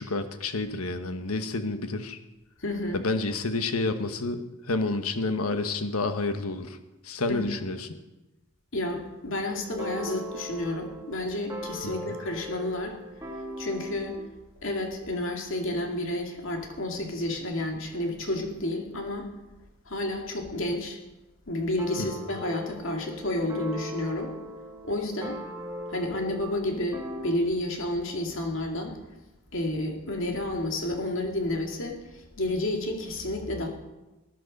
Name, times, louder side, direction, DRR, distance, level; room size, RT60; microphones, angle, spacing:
voice 1, 0.0-2.2 2.9-6.8 7.0-7.9 11.8-12.1 22.0-22.1, left 3 dB, 85° left, 8 dB, 1.3 m, -29 dB
voice 2, 2.6-3.0 7.3-7.6 8.7-13.0 13.6-14.2 14.6-19.3 19.9-21.0 21.5-24.3 24.8-25.4 25.9-28.9 29.5-33.7, left 1 dB, 65° left, 2 dB, 2.4 m, -30 dB
sound 1, 9.6-14.3 21.8-27.3, equal, 15° right, 1.9 m, -40 dB
19.5 x 11.0 x 5.3 m, 1.1 s
head